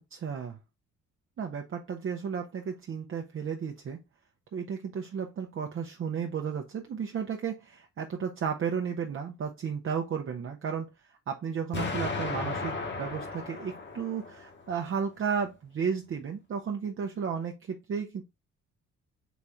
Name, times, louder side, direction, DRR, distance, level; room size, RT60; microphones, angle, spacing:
voice 1, 0.1-0.6 1.4-4.0 4.5-18.2, right 7 dB, 45° right, 0.7 m, -33 dB
Explosion, 11.7-14.7, left 3 dB, 40° left, 1.3 m, -35 dB
4.0 x 3.0 x 3.4 m
cardioid pair, 90°, 30 cm